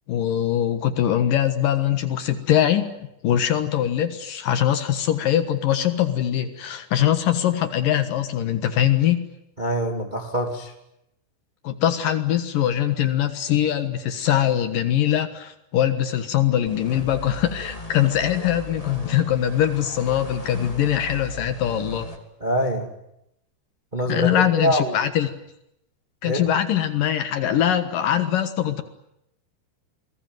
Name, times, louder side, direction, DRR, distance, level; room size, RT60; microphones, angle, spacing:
voice 1, 0.1-9.2 11.6-22.1 24.1-25.3 26.2-28.8, left 11 dB, 65° left, 9 dB, 2.3 m, -22 dB
voice 2, 9.6-10.7 22.4-22.9 23.9-25.0 26.2-26.4, equal, 20° right, 3 dB, 1.1 m, -24 dB
sound 1, 16.7-22.2, left 1 dB, 10° left, 1.6 m, -37 dB
28.5 x 21.0 x 9.3 m, 0.82 s
omnidirectional pair, 5.8 m